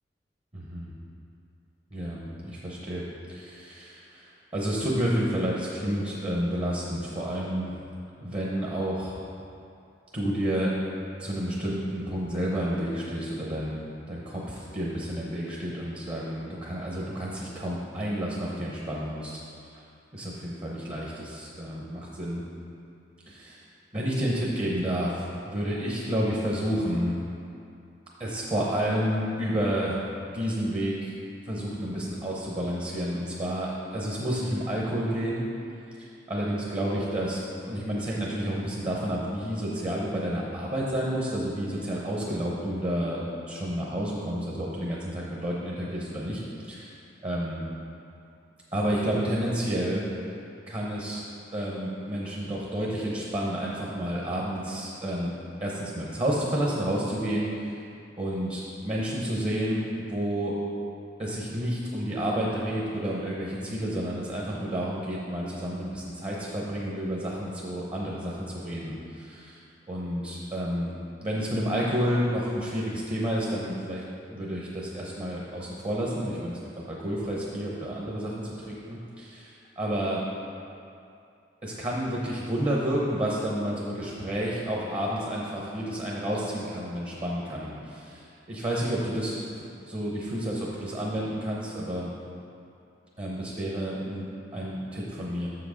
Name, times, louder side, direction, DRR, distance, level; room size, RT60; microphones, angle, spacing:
voice 1, 0.5-0.9 1.9-7.8 8.2-9.2 10.1-10.7 11.2-19.4 19.7-19.8 20.1-22.4 23.3-23.6 23.9-27.2 28.2-30.0 30.3-31.1 31.4-35.4 36.0-43.2 43.5-47.0 47.2-47.6 48.7-50.0 50.7-51.2 51.5-55.3 55.6-57.8 58.2-60.6 61.2-69.6 69.9-70.9 71.2-74.0 74.3-76.6 76.8-80.2 81.6-89.4 89.9-92.1 93.2-94.3 94.5-95.5, equal, 30° right, -4 dB, 0.8 m, -30 dB
6.9 x 5.9 x 4.9 m, 2.6 s
head